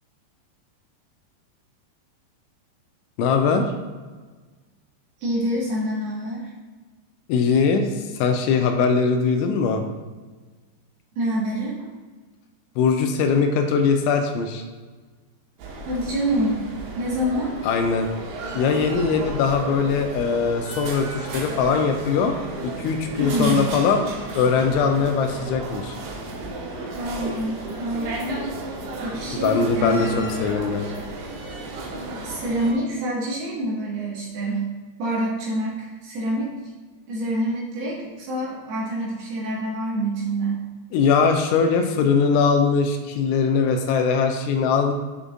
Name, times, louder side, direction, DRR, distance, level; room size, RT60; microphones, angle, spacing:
voice 1, 3.2-3.7 7.3-9.8 12.8-14.6 17.6-18.1 18.6-22.3 22.6-26.0 29.4-30.9 40.9-44.9, left 5 dB, 85° left, 5 dB, 2.9 m, -21 dB
voice 2, 5.2-6.5 11.2-11.9 15.9-16.7 17.0-17.5 23.2-23.7 27.0-28.5 29.0-30.4 32.2-34.7 35.0-36.5 37.1-40.6, right 1 dB, 65° right, -5 dB, 3.0 m, -26 dB
sound 1, 15.6-32.7, right 2 dB, 85° right, 3.6 m, -33 dB
7.7 x 6.7 x 2.5 m, 1.4 s
omnidirectional pair, 5.5 m